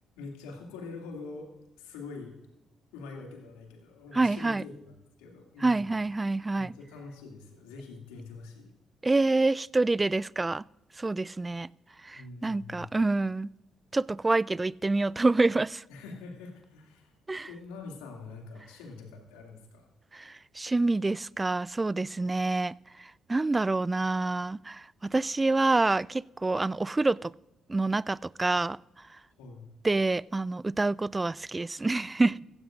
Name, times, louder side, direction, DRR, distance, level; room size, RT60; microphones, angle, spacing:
voice 1, 0.2-1.5 1.8-2.3 2.9-5.9 6.5-8.7 12.1-13.0 15.9-17.1 17.5-19.9 29.4-29.7 31.8-32.0 32.3-32.4, left 3 dB, 80° left, 0 dB, 2.5 m, -44 dB
voice 2, 4.1-4.6 5.6-6.7 9.0-10.6 11.0-11.7 12.1-13.5 13.9-15.8 17.3-17.5 20.1-22.7 23.3-27.3 27.7-28.8 29.8-32.4, right 2 dB, 25° right, 24 dB, 0.3 m, -27 dB
15.5 x 15.0 x 2.6 m, 0.94 s
hypercardioid pair, 45°, 0 cm